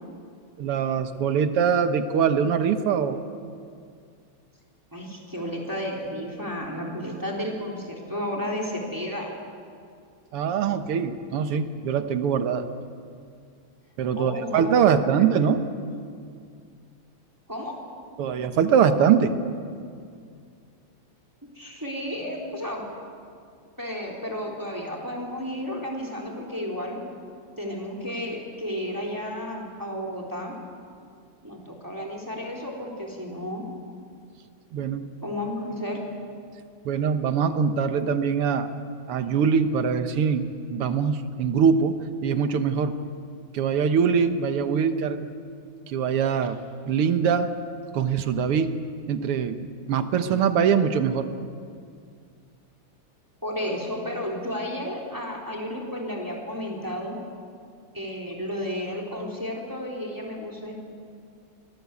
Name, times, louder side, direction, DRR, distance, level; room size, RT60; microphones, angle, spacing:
voice 1, 0.6-3.2 10.3-12.7 14.0-15.7 18.2-19.4 34.7-35.1 36.9-38.7 39.1-43.0 43.5-45.3 45.9-46.6 46.9-47.5 47.9-48.8 49.1-49.6 49.9-51.3, right 7 dB, 85° right, 9 dB, 2.1 m, -23 dB
voice 2, 4.9-9.3 14.2-15.5 17.5-17.8 21.6-22.9 23.8-27.0 27.6-30.6 31.4-33.6 35.2-36.0 53.4-57.2 57.9-60.8, equal, 10° right, -1 dB, 3.7 m, -32 dB
25.0 x 19.0 x 8.4 m, 2.3 s
omnidirectional pair, 2.4 m